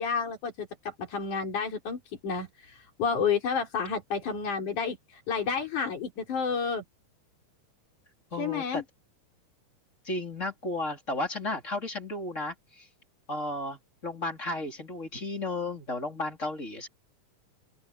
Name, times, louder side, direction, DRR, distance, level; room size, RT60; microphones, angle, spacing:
voice 1, 0.0-6.8 8.4-8.8, left 6 dB, 75° left, 5.9 m, -30 dB
voice 2, 8.3-8.8 10.0-12.9 13.3-16.9, left 2 dB, 25° left, 3.8 m, -34 dB
open air
omnidirectional pair, 3.5 m